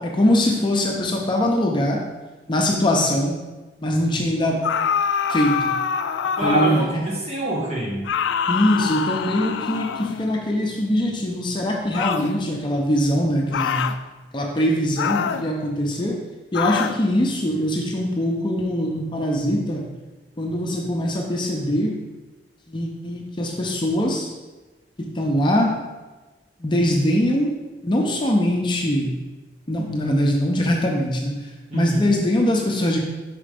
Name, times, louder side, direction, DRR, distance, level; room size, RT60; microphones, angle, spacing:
voice 1, 0.0-2.0 2.5-3.4 3.8-4.6 5.3-5.8 6.4-6.8 8.5-13.9 14.3-16.2 16.5-19.8 20.4-22.0 22.7-24.3 25.0-25.8 26.6-27.5 27.8-29.2 29.7-31.4 31.7-33.0, left 1 dB, 25° left, 0 dB, 0.6 m, -22 dB
sound 1, 4.6-6.9 8.0-10.3 11.9-12.3 13.5-14.0 15.0-15.5 16.5-17.0, left 7 dB, 85° left, 0.3 m, -25 dB
voice 2, 6.4-8.1 31.7-32.1, right 1 dB, 35° right, -3 dB, 1.3 m, -25 dB
5.0 x 4.3 x 5.1 m, 1.2 s
head